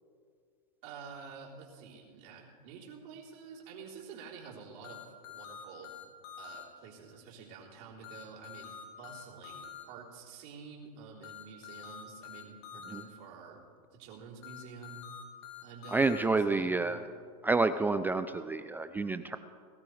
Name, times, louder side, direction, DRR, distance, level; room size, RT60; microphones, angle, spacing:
voice 1, 0.8-5.9 6.4-15.1 15.6-17.0, right 5 dB, 55° right, -3 dB, 3.8 m, -49 dB
sound 1, 4.8-6.6 8.0-9.8 11.2-13.0 14.4-16.2, left 8 dB, 55° left, 2.3 m, -46 dB
voice 2, 15.9-17.0 17.4-19.4, right 3 dB, 10° right, 10 dB, 0.4 m, -29 dB
21.5 x 13.0 x 3.3 m, 2.1 s
hypercardioid pair, 115°, 20 cm